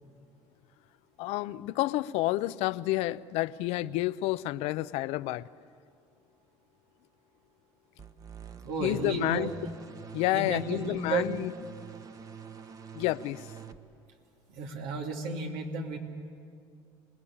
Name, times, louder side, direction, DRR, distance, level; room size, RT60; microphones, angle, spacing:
voice 1, 1.2-5.5 8.8-9.5 10.1-11.5 12.9-13.5, left 17 dB, 75° left, 16 dB, 0.6 m, -29 dB
sound 1, 8.0-13.8, right 6 dB, 35° right, 1.2 m, -46 dB
voice 2, 8.6-9.5 10.3-11.3 14.5-16.0, right 4 dB, 85° right, 2 dB, 2.7 m, -33 dB
27.5 x 19.5 x 8.7 m, 2.3 s
supercardioid pair, 105°, 11 cm